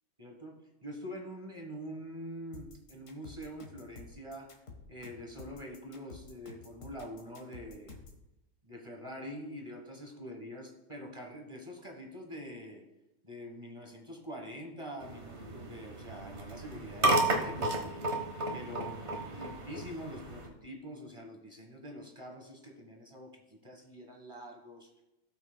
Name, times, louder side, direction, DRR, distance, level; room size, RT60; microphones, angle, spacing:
voice 1, 0.2-4.5 4.9-7.9 8.6-12.8 13.2-18.2 18.5-24.9, equal, 20° right, 1 dB, 1.1 m, -45 dB
sound 1, 2.5-8.2, left 4 dB, 45° left, 1.6 m, -50 dB
sound 2, 15.0-20.5, right 2 dB, 40° right, 1.4 m, -33 dB
17.5 x 6.0 x 2.2 m, 0.95 s
omnidirectional pair, 2.0 m